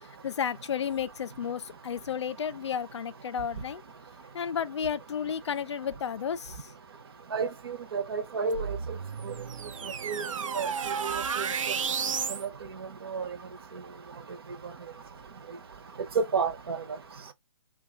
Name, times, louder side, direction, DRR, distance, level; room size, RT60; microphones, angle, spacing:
voice 1, 0.2-3.8 4.3-6.6, left 8 dB, 60° left, 0.4 m, -32 dB
voice 2, 7.3-8.8 9.3-9.4 10.0-10.2 10.5-10.7 11.0-11.5 13.1-13.3 16.2-16.8, right 5 dB, 45° right, 0.7 m, -30 dB
sound 1, 8.5-12.5, right 6 dB, 80° right, 0.5 m, -32 dB
3.3 x 2.3 x 3.5 m
hypercardioid pair, 175°, 17 cm